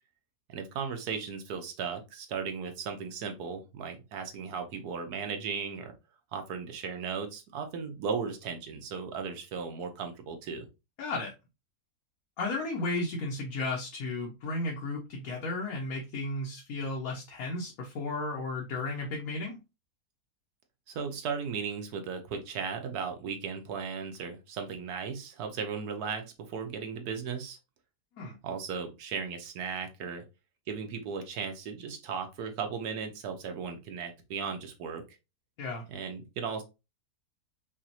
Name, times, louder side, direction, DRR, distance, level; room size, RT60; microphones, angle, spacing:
voice 1, 0.5-5.9 6.3-10.7 20.9-27.6 28.4-30.2 30.7-35.0 35.9-36.6, right 6 dB, 80° right, 5 dB, 1.4 m, -36 dB
voice 2, 11.0-11.3 12.4-19.6 28.2-28.3 35.6-35.8, left 2 dB, 70° left, -1 dB, 1.3 m, -34 dB
5.1 x 2.5 x 2.8 m, 0.26 s
omnidirectional pair, 1.6 m